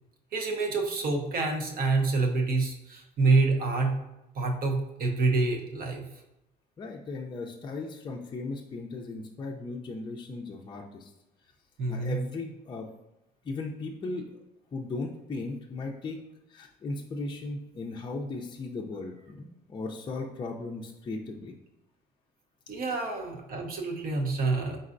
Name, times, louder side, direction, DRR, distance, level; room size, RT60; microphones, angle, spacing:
voice 1, 0.3-3.9 4.3-6.1 11.8-12.2 22.7-24.8, right 3 dB, 60° right, 2 dB, 0.8 m, -27 dB
voice 2, 6.8-11.1 11.9-12.9 13.4-14.4 14.7-16.2 16.5-21.5, left 3 dB, 30° left, 0 dB, 0.4 m, -37 dB
4.1 x 3.9 x 2.5 m, 0.90 s
cardioid pair, 110°, 17 cm